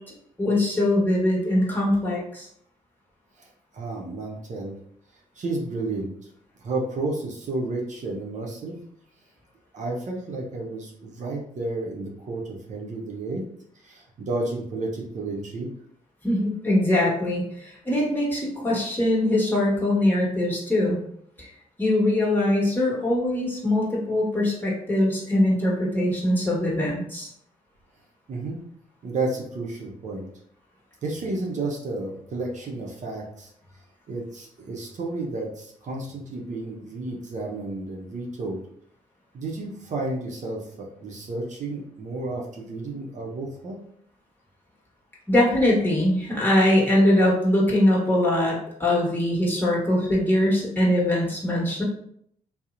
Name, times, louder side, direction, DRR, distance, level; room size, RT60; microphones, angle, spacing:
voice 1, 0.4-2.5 16.2-21.0 21.4-21.5 21.8-27.3 45.3-51.8, left 1 dB, 10° left, -5 dB, 1.2 m, -22 dB
voice 2, 3.4-4.7 5.4-6.1 6.6-8.8 9.7-13.4 13.8-15.7 28.3-28.6 29.0-30.3 31.0-33.5 34.1-38.6 39.3-43.8, right 2 dB, 50° right, -1 dB, 0.6 m, -32 dB
2.7 x 2.0 x 2.4 m, 0.68 s
supercardioid pair, 50°, 16 cm